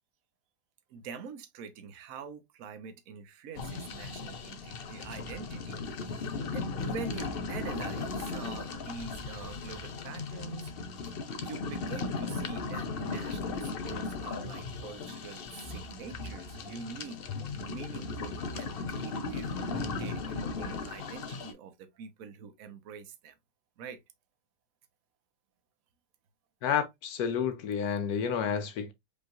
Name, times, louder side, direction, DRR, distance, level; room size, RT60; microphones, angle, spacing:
voice 1, 0.9-5.8 6.5-10.7 11.4-17.2 17.5-23.3 23.8-24.0, right 5 dB, 60° right, 1.1 m, -44 dB
sound 1, 3.5-21.5, left 4 dB, 90° left, 0.5 m, -37 dB
voice 2, 26.6-28.9, left 7 dB, 70° left, 1.0 m, -30 dB
5.2 x 3.4 x 2.4 m
omnidirectional pair, 2.0 m